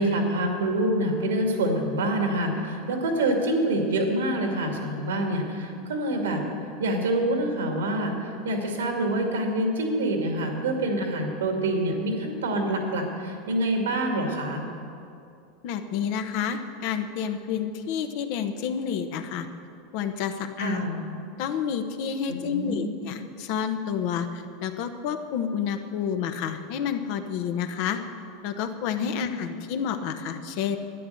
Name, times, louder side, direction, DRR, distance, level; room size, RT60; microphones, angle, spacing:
voice 1, 0.0-6.4 6.8-14.6 20.6-21.0 22.3-22.9 29.0-29.3, right 1 dB, 90° right, 3 dB, 2.2 m, -26 dB
voice 2, 15.6-19.5 19.9-20.8 21.4-28.0 28.4-30.8, left 8 dB, 60° left, 8 dB, 1.0 m, -29 dB
11.5 x 10.0 x 7.8 m, 2.6 s
hypercardioid pair, 105°, 0 cm